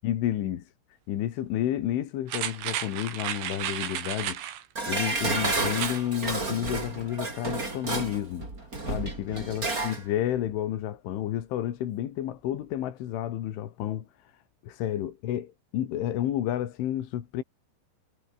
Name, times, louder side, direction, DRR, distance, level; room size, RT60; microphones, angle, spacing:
voice 1, 0.0-0.6 1.1-4.4 4.9-8.5 8.9-14.1 14.6-17.4, left 12 dB, 85° left, 4.6 m, -31 dB
sound 1, 2.3-4.6 5.6-6.0 6.4-6.5, right 11 dB, 85° right, 4.8 m, -33 dB
Dishes pots and pans, 4.7-10.0 10.4-10.5, right 2 dB, 20° right, 4.9 m, -31 dB
omnidirectional pair, 5.4 m